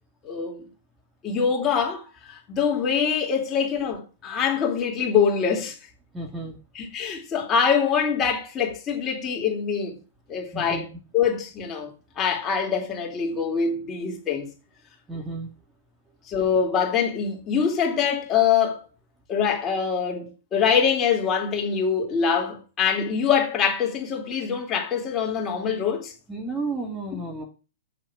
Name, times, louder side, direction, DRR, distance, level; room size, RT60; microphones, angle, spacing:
voice 1, 0.2-0.6 1.2-5.8 6.8-9.9 10.3-10.9 11.1-11.9 12.2-14.5 16.3-18.9 19.3-26.1, left 6 dB, 25° left, 3.6 m, -24 dB
voice 2, 6.1-6.6 10.5-10.9 15.1-15.5 26.3-27.4, right 3 dB, 10° right, 2.5 m, -32 dB
7.8 x 7.4 x 6.3 m
hypercardioid pair, 120°, 0 cm